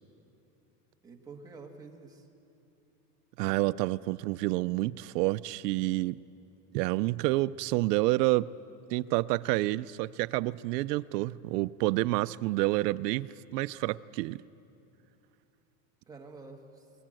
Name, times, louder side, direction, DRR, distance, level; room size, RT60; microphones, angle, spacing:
voice 1, 1.0-2.3 16.1-16.9, right 4 dB, 10° right, 1 dB, 1.4 m, -48 dB
voice 2, 3.4-6.2 6.7-8.5 8.9-14.4, right 19 dB, 85° right, 15 dB, 0.6 m, -29 dB
20.5 x 18.5 x 7.7 m, 2.8 s
supercardioid pair, 165°, 47 cm